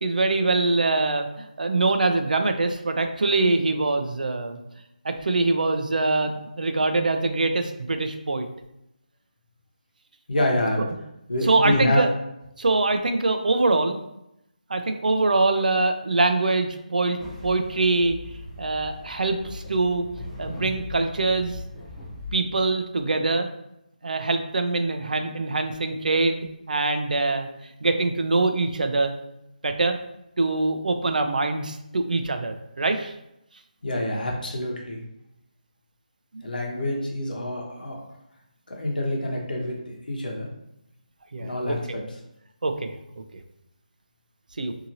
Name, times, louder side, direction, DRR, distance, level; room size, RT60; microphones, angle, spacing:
voice 1, 0.0-4.6 5.0-8.5 11.4-12.1 12.6-14.0 14.7-18.2 18.6-20.1 20.4-21.6 22.3-23.5 24.0-27.5 27.8-29.2 29.6-30.0 30.4-33.1 36.3-36.5 41.3-41.8 42.6-42.9 44.6-44.7, right 3 dB, 75° right, 7 dB, 0.4 m, -24 dB
voice 2, 10.3-10.9 11.3-12.0 33.8-35.0 36.4-38.0 38.7-39.8 40.1-40.5 41.4-41.8, left 1 dB, 85° left, -1 dB, 1.0 m, -26 dB
sound 1, 17.2-22.4, left 2 dB, 5° left, 0.4 m, -39 dB
2.8 x 2.7 x 2.6 m, 0.84 s
hypercardioid pair, 175°, 5 cm